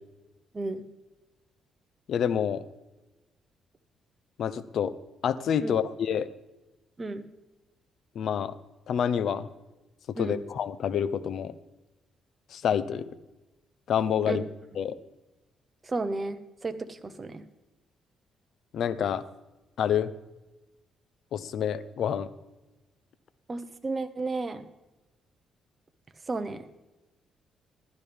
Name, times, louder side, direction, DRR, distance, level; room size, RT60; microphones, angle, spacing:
voice 1, 2.1-2.6 4.4-5.0 5.2-6.3 8.1-8.5 8.9-9.5 10.2-11.5 12.5-13.2 13.9-14.4 14.8-14.9 18.7-19.2 19.8-20.1 21.3-22.3, left 8 dB, 65° left, 16 dB, 0.7 m, -27 dB
voice 2, 15.8-17.4 23.5-24.7 26.3-26.7, right 3 dB, 30° right, 9 dB, 1.1 m, -33 dB
15.5 x 12.0 x 3.5 m, 1.1 s
cardioid pair, 90°, 0 cm